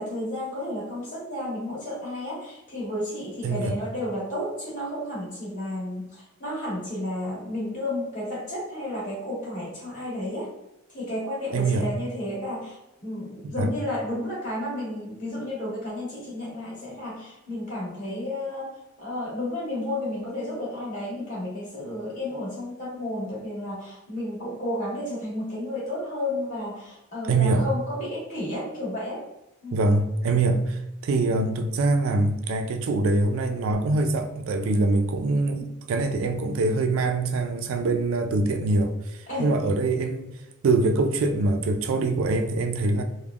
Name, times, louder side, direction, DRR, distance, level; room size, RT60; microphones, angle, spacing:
voice 1, 0.0-10.5 10.9-29.2 29.6-29.8 35.5-35.6 39.3-39.5, left 1 dB, 40° left, -7 dB, 1.4 m, -32 dB
voice 2, 3.4-3.8 11.5-11.9 13.4-13.7 27.2-27.7 29.7-35.6 35.9-40.3 40.6-43.0, right 2 dB, 70° right, 6 dB, 0.3 m, -24 dB
3.4 x 2.1 x 2.3 m, 0.93 s
head